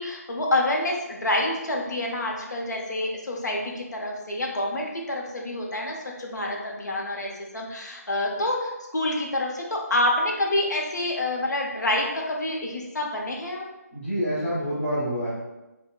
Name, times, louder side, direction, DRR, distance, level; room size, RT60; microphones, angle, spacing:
voice 1, 0.0-13.6, left 1 dB, 85° left, -1 dB, 0.7 m, -27 dB
voice 2, 13.9-15.3, equal, 5° left, -14 dB, 0.7 m, -27 dB
3.7 x 2.1 x 2.3 m, 0.99 s
figure-of-eight pair, 170°, 9 cm